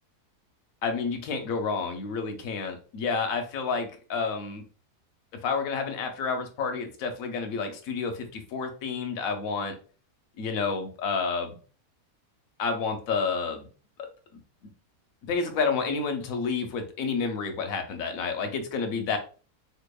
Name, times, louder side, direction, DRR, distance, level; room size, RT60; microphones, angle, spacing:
voice 1, 0.8-4.6 5.4-9.8 10.4-11.6 12.6-13.7 14.0-14.1 15.2-19.2, left 5 dB, 70° left, 6 dB, 1.0 m, -30 dB
4.0 x 2.7 x 2.2 m, 0.39 s
omnidirectional pair, 1.7 m